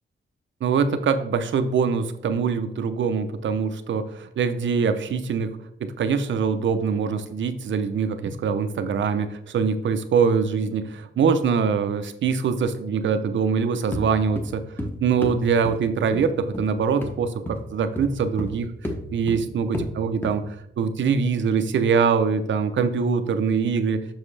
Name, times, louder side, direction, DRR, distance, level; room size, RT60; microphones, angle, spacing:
voice 1, 0.6-14.6 15.0-18.7 19.1-24.0, right 6 dB, 70° right, 10 dB, 0.7 m, -23 dB
sound 1, 13.9-14.1 14.4-14.9 15.2-15.4 15.6-15.8 16.1-16.3 16.5-16.7 17.0-17.2 17.5-17.6 18.0-18.6 18.8-19.0 19.3-19.4 19.7-19.9 20.2-20.4, left 1 dB, 10° left, 0.9 m, -30 dB
7.3 x 6.3 x 3.3 m, 0.77 s
wide cardioid pair, 180°, 20 cm